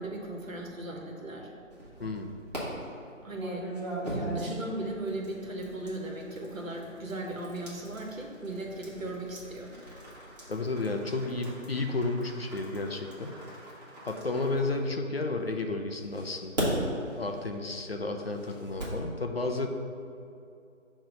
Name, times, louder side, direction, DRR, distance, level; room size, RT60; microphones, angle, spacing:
voice 1, 0.0-1.5 3.2-3.7 4.1-9.7, right 1 dB, 80° right, 0 dB, 1.3 m, -37 dB
sound 1, 1.7-2.6 3.3-15.4 16.0-19.0, right 1 dB, 30° right, 1.4 m, -40 dB
voice 2, 2.0-2.3 10.5-13.4 14.0-16.8 17.2-19.7, left 2 dB, 50° left, 4 dB, 0.5 m, -32 dB
6.5 x 3.1 x 5.1 m, 2.6 s
figure-of-eight pair, 170°, 40 cm